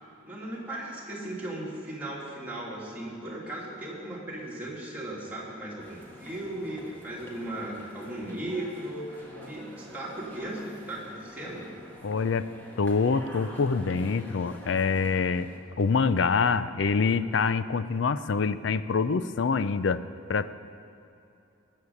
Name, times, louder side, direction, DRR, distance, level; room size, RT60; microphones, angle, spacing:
voice 1, 0.2-11.7, right 1 dB, 10° right, -6 dB, 2.6 m, -37 dB
sound 1, 5.8-15.6, equal, 10° left, 1.6 m, -47 dB
voice 2, 12.0-12.5 12.8-15.5 15.8-20.0 20.3-20.5, left 5 dB, 70° left, 14 dB, 0.5 m, -25 dB
19.5 x 6.6 x 7.1 m, 2.7 s
head